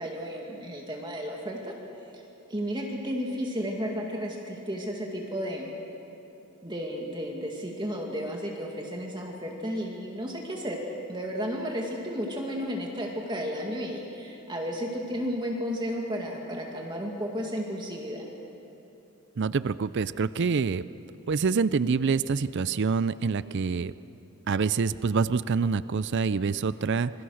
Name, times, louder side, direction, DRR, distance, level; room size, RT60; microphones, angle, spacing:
voice 1, 0.0-1.7 2.5-5.7 6.6-10.8 11.1-18.3, equal, 20° right, 0 dB, 2.1 m, -33 dB
voice 2, 19.4-20.8 21.3-23.9 24.5-27.1, right 5 dB, 50° right, 16 dB, 0.4 m, -26 dB
26.5 x 21.5 x 6.4 m, 2.9 s
head